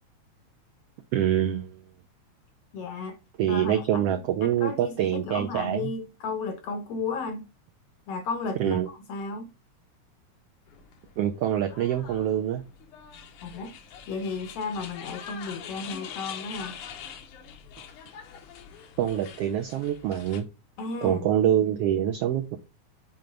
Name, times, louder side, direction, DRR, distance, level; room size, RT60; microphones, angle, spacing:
voice 1, 1.1-1.8 3.4-5.9 8.6-8.9 11.2-12.6 19.0-20.5 21.0-22.6, right 10 dB, 85° right, 1.3 m, -25 dB
voice 2, 2.7-3.2 3.5-7.5 8.1-9.5 13.4-13.8 14.1-16.7 20.8-21.3, left 4 dB, 70° left, 1.6 m, -34 dB
sound 1, 10.7-20.4, left 8 dB, 90° left, 2.6 m, -44 dB
6.9 x 4.5 x 3.8 m
omnidirectional pair, 3.5 m